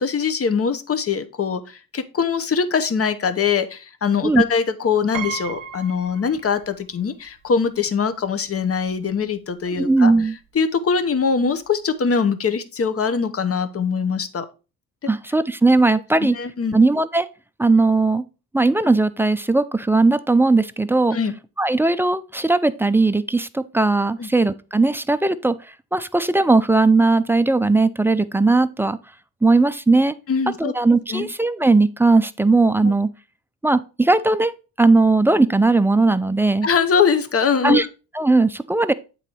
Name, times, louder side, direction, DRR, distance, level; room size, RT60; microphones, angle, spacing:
voice 1, 0.0-10.1 10.5-14.4 16.2-16.8 21.1-21.3 24.2-24.3 30.3-30.7 31.1-31.3 36.6-37.9, left 6 dB, 35° left, 1.0 m, -22 dB
Piano, 5.1-7.0 7.3-7.4 8.5-8.6 8.9-9.2, right 8 dB, 50° right, 0.9 m, -34 dB
voice 2, 9.8-10.4 15.1-16.4 16.7-17.3 17.6-18.2 18.5-21.2 21.6-29.0 29.4-30.1 30.6-33.1 33.6-36.7 37.6-37.9 38.1-38.9, right 3 dB, 5° right, 0.3 m, -18 dB
8.1 x 3.9 x 4.5 m
supercardioid pair, 65°, 42 cm